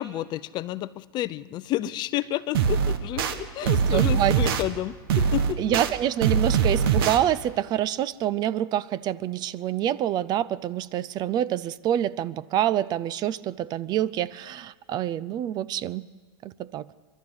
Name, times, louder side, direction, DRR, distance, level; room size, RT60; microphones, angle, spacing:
voice 1, 0.0-5.6, left 14 dB, 35° left, 16 dB, 0.6 m, -30 dB
sound 1, 2.5-3.3 3.6-4.6 5.1-5.9 6.2-7.2, right 7 dB, 70° right, 1.7 m, -22 dB
voice 2, 3.6-4.5 5.6-16.0 16.4-16.9, right 11 dB, 35° right, 19 dB, 0.5 m, -27 dB
28.5 x 12.5 x 8.0 m, 1.6 s
hypercardioid pair, 125°, 13 cm